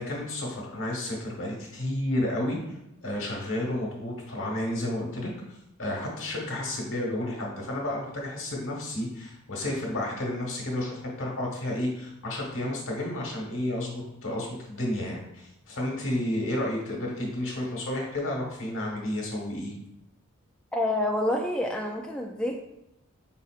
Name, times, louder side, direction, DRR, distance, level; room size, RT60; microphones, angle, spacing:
voice 1, 0.0-2.6 3.0-5.3 5.8-19.7, left 1 dB, 60° left, -1 dB, 1.4 m, -31 dB
voice 2, 20.7-22.6, left 1 dB, 5° left, 0 dB, 0.3 m, -28 dB
5.4 x 4.0 x 2.4 m, 0.84 s
head